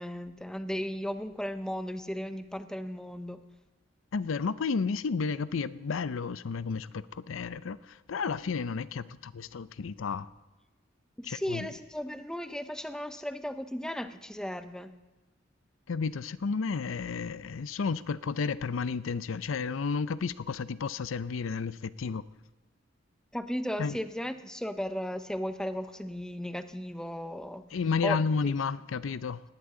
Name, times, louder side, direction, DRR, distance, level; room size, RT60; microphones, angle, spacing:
voice 1, 0.0-3.4 11.2-14.9 23.3-27.6 28.0-28.2 28.4-28.5, equal, 5° left, 0.7 m, -35 dB
voice 2, 4.1-10.3 11.2-11.7 15.9-22.2 23.8-24.0 27.7-29.4, left 5 dB, 80° left, 0.5 m, -32 dB
19.5 x 18.0 x 3.8 m
head